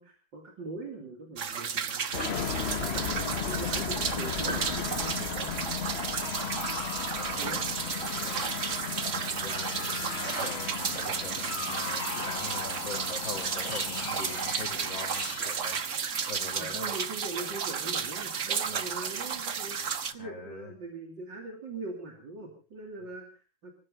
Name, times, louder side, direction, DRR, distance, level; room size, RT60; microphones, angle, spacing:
voice 1, 0.0-2.1 2.8-5.6 7.4-7.6 16.6-19.8 20.1-23.7, right 2 dB, 70° right, 1 dB, 3.6 m, -41 dB
sound 1, 1.4-20.1, right 7 dB, 45° right, 1.3 m, -33 dB
sound 2, 2.1-16.8, left 7 dB, 45° left, 0.9 m, -36 dB
sound 3, 4.5-6.3, right 3 dB, 25° right, 1.9 m, -43 dB
voice 2, 7.1-7.6 9.1-9.9 10.4-15.8 16.3-16.9 18.7-18.8 20.2-20.7, left 4 dB, 75° left, -3 dB, 3.2 m, -43 dB
24.5 x 15.5 x 3.8 m, 0.37 s
omnidirectional pair, 2.0 m